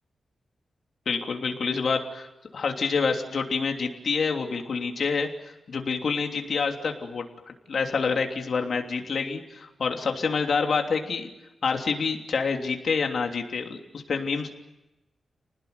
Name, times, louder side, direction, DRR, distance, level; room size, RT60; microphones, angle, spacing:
voice 1, 1.0-2.3 2.5-5.3 5.7-11.3 11.6-14.5, left 5 dB, 55° left, 3 dB, 3.2 m, -27 dB
30.0 x 19.5 x 9.5 m, 1.0 s
wide cardioid pair, 175°, 0 cm